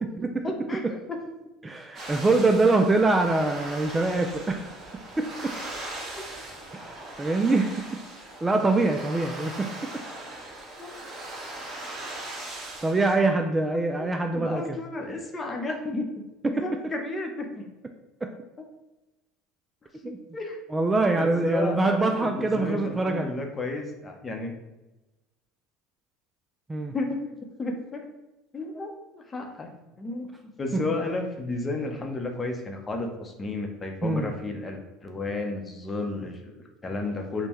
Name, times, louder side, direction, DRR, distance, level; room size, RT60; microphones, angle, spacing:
voice 1, 0.4-0.8 1.1-1.2 8.7-8.9 10.8-10.9 14.0-14.1 14.3-16.1 16.5-17.6 20.3-20.6 21.1-24.5 26.9-27.2 27.6-28.1 28.5-29.7 30.0-30.3 30.6-37.5, left 2 dB, 20° left, 3 dB, 0.7 m, -32 dB
voice 2, 1.6-4.8 5.2-5.5 6.7-7.8 8.4-10.0 12.8-14.8 16.4-16.6 20.0-20.2 20.7-23.3 26.7-26.9 34.0-34.3, right 2 dB, 15° right, 4 dB, 0.3 m, -24 dB
sound 1, 1.9-13.1, right 1 dB, 30° right, 1.4 m, -39 dB
5.3 x 2.2 x 3.0 m, 1.0 s
supercardioid pair, 110°, 0 cm